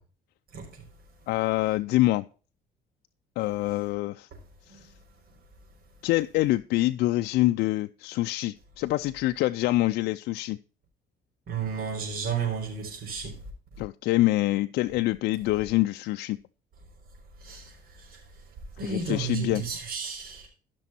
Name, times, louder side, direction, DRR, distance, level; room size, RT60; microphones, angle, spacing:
voice 1, 0.5-0.9 4.7-4.8 11.5-13.4 17.4-18.2 18.8-20.5, right 6 dB, 60° right, 4.3 m, -33 dB
voice 2, 1.3-2.3 3.4-4.3 4.7-4.9 6.0-10.6 13.8-16.4 18.8-19.6, left 17 dB, 75° left, 0.4 m, -25 dB
15.0 x 6.2 x 4.3 m
cardioid pair, 110°, 17 cm